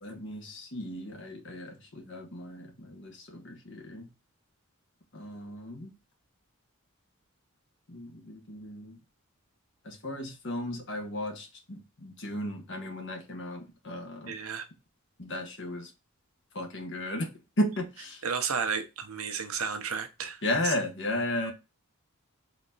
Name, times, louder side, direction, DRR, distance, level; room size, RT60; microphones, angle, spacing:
voice 1, 0.0-4.1 5.1-5.9 7.9-9.0 9.8-14.4 15.2-15.9 16.5-17.3 17.6-18.2 20.4-21.5, left 1 dB, 60° left, 1.3 m, -35 dB
voice 2, 14.3-14.6 18.2-20.7, right 6 dB, 80° right, 0.8 m, -33 dB
4.1 x 3.0 x 4.0 m
head